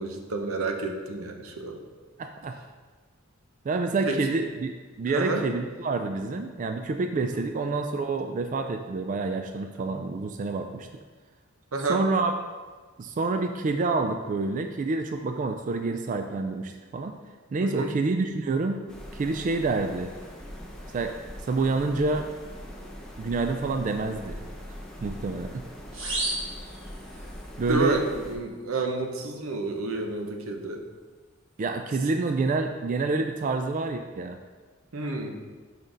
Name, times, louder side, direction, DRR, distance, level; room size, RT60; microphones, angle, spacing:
voice 1, 0.0-1.8 4.0-4.2 5.0-5.4 7.3-7.4 11.7-12.0 17.6-17.9 27.6-30.8 34.9-35.4, right 2 dB, 85° right, 3 dB, 0.8 m, -30 dB
voice 2, 2.2-2.6 3.6-4.7 5.0-10.9 11.9-12.3 13.0-17.1 17.5-18.8 19.1-20.1 20.9-21.2 21.4-22.3 23.2-24.4 25.0-25.6 27.6-28.0 31.6-34.4, right 3 dB, 40° right, 6 dB, 0.3 m, -28 dB
sound 1, 18.9-28.3, equal, 5° left, 0.8 m, -41 dB
sound 2, 25.9-27.5, right 2 dB, 65° right, 1.7 m, -33 dB
6.1 x 5.2 x 3.9 m, 1.4 s
head